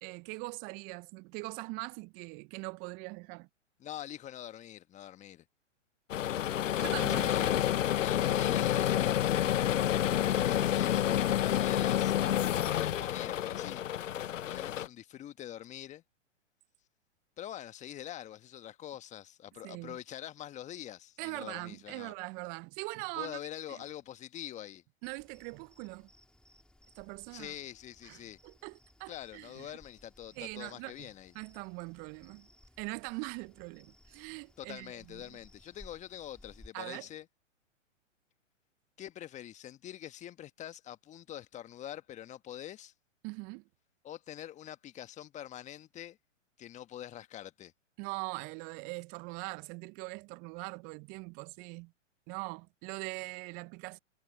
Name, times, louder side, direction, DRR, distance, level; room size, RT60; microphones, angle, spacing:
voice 1, 0.0-3.5 6.8-7.6 19.6-20.0 21.2-23.4 23.7-23.8 25.0-26.1 27.0-27.5 28.0-29.7 30.4-31.1 31.3-32.5 32.8-35.3 36.7-37.1 43.2-43.6 48.0-51.9 52.3-54.0, right 29 dB, 25° right, 0.6 m, -42 dB
voice 2, 3.8-5.4 7.1-7.6 7.9-9.1 10.2-12.1 12.7-13.8 14.4-16.0 17.4-22.1 23.1-24.8 27.3-28.4 29.1-31.3 34.6-37.3 39.0-42.9 44.0-46.2 46.6-47.7, left 12 dB, 20° left, 1.4 m, -45 dB
sound 1, 6.1-14.9, left 11 dB, 75° left, 0.6 m, -29 dB
sound 2, 25.0-36.7, left 1 dB, ahead, 2.1 m, -61 dB
figure-of-eight pair, 120°, 38 cm